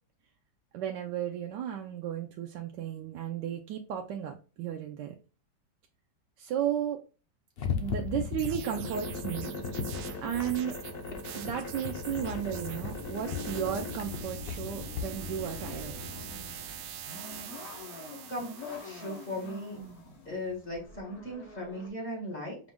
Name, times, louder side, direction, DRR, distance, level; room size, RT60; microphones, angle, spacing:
voice 1, 0.7-5.2 6.4-7.0 7.8-9.6 10.2-10.8 11.3-15.9, right 9 dB, 90° right, 3 dB, 1.2 m, -34 dB
sound 1, 7.6-15.0, left 5 dB, 80° left, 0.5 m, -37 dB
sound 2, 8.4-19.8, right 10 dB, 70° right, 1.0 m, -45 dB
sound 3, 12.1-21.9, left 3 dB, 60° left, 1.4 m, -44 dB
voice 2, 18.3-19.8 20.3-22.6, left 1 dB, 30° left, -4 dB, 2.0 m, -37 dB
5.1 x 2.5 x 3.4 m, 0.35 s
omnidirectional pair, 1.8 m